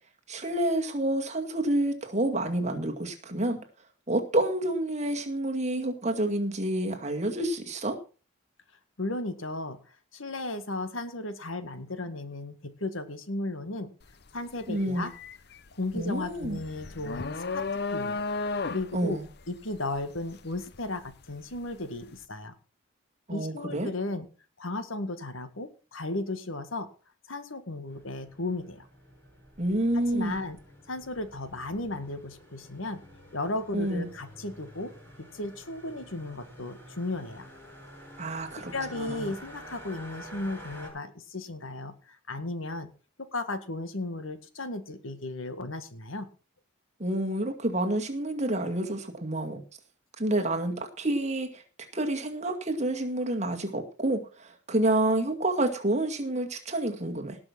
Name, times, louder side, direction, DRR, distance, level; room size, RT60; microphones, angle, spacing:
voice 1, 0.3-3.6 4.1-8.0 14.7-15.1 16.0-16.6 18.9-19.3 23.3-23.9 29.6-30.4 33.7-34.1 38.2-38.7 39.0-39.3 47.0-49.6 50.2-51.6 51.9-57.4, right 1 dB, 35° right, 4 dB, 2.1 m, -28 dB
voice 2, 9.0-13.9 14.3-15.1 15.7-17.6 17.9-18.2 18.6-19.2 19.5-22.5 23.3-24.3 24.6-26.9 27.3-28.9 29.9-30.6 30.9-33.0 33.3-34.9 35.3-37.5 38.6-42.9 43.2-46.3, left 2 dB, 75° left, 10 dB, 1.8 m, -35 dB
sound 1, 14.0-14.3 14.6-21.6, left 3 dB, 50° left, 0.7 m, -34 dB
sound 2, 27.9-40.9, equal, 10° left, 7.7 m, -49 dB
18.0 x 6.1 x 5.9 m, 0.35 s
head